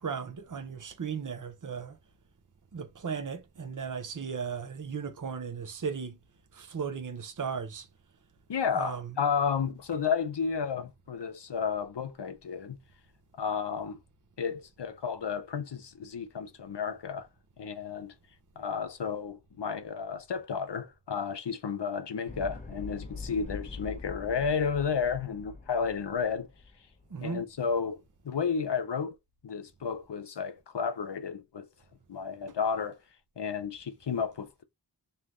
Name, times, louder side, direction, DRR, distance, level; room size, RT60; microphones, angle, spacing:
voice 1, 0.0-2.0 2.7-6.2 6.5-7.9 8.7-9.1 27.1-27.4, right 6 dB, 45° right, 0.7 m, -36 dB
voice 2, 8.5-12.8 13.4-14.0 14.4-17.3 17.6-18.1 18.6-26.5 27.2-29.2 29.4-31.7 32.1-33.0 33.4-34.6, left 6 dB, 75° left, 0.7 m, -32 dB
sound 1, 22.3-27.5, left 3 dB, 20° left, 0.7 m, -43 dB
3.3 x 2.8 x 3.6 m
wide cardioid pair, 60°, 42 cm